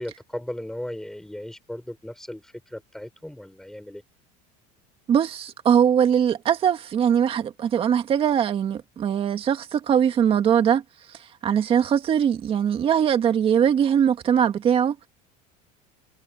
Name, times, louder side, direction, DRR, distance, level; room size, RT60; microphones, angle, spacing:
voice 1, 0.0-4.0, left 1 dB, ahead, 6.2 m, -36 dB
voice 2, 5.1-10.8 11.1-15.1, right 8 dB, 30° right, 2.0 m, -21 dB
cardioid pair, 155°, 19 cm